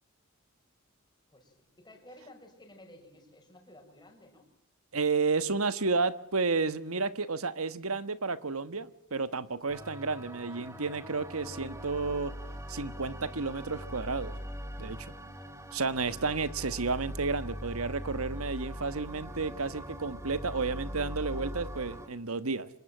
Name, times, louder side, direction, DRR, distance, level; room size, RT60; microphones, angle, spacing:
voice 1, 1.3-4.5 9.6-9.7 14.8-15.1, left 1 dB, 20° left, 6.0 m, -55 dB
voice 2, 4.9-12.3 12.7-14.4 14.8-15.1 15.7-22.7, right 4 dB, 85° right, 1.4 m, -31 dB
sound 1, 9.7-22.1, equal, 15° right, 2.2 m, -41 dB
26.0 x 21.0 x 7.4 m
head